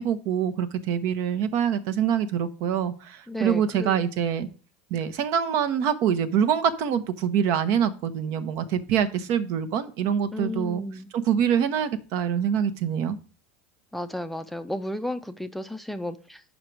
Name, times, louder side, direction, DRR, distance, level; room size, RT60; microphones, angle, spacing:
voice 1, 0.0-4.5 4.9-10.8 11.1-13.2, right 8 dB, 60° right, 0.8 m, -25 dB
voice 2, 3.3-4.0 10.3-11.1 13.9-16.4, left 1 dB, 5° left, 0.4 m, -33 dB
6.3 x 5.2 x 4.6 m
supercardioid pair, 105°, 6 cm